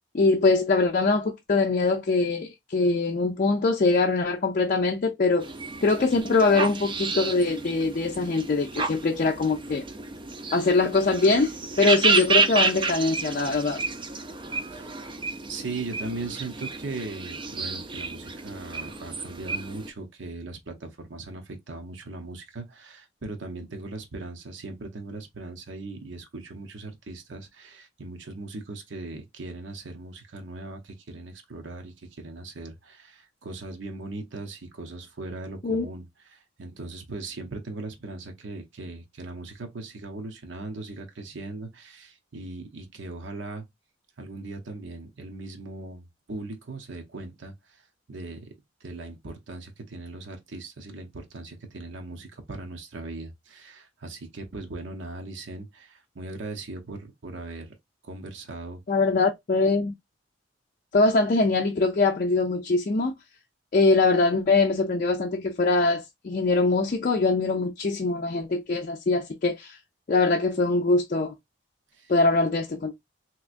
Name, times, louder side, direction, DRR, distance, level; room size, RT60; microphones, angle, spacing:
voice 1, 0.1-5.5 5.8-9.8 10.5-13.8 35.6-35.9 58.9-59.9 60.9-63.1 63.7-69.8 70.1-71.3 72.1-72.9, left 3 dB, 45° left, 0.4 m, -23 dB
sound 1, 5.4-19.9, right 4 dB, 25° right, 0.4 m, -30 dB
voice 2, 15.5-36.0 36.3-43.6 44.2-47.8 48.1-48.5 48.8-57.7 58.0-58.8 71.9-72.1, right 2 dB, 75° right, 0.8 m, -39 dB
3.4 x 2.9 x 2.5 m
head